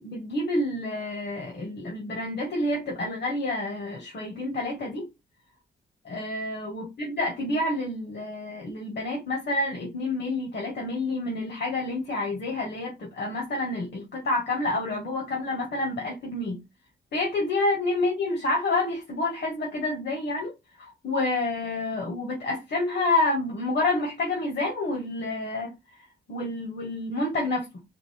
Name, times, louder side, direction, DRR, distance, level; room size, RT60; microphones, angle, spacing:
voice 1, 0.0-5.1 6.0-16.6 17.1-20.5 20.8-25.7 26.3-27.7, left 2 dB, 65° left, 1.6 m, -28 dB
3.9 x 3.6 x 3.5 m
wide cardioid pair, 125°, 19 cm